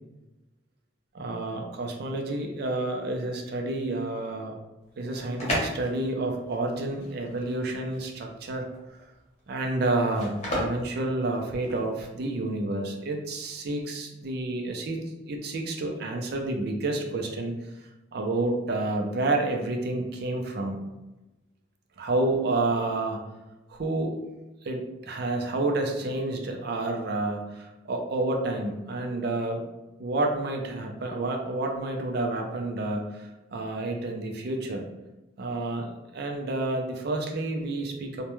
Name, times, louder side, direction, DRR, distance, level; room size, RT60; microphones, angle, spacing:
voice 1, 1.1-4.6 5.0-8.7 9.5-15.0 15.2-17.5 18.1-20.8 22.0-23.2 23.7-24.2 24.6-29.6 30.0-34.8 35.4-38.2, right 2 dB, 55° right, 2 dB, 0.4 m, -29 dB
sound 1, 4.8-11.9, equal, 35° left, 0.8 m, -35 dB
2.2 x 2.1 x 2.9 m, 1.0 s
head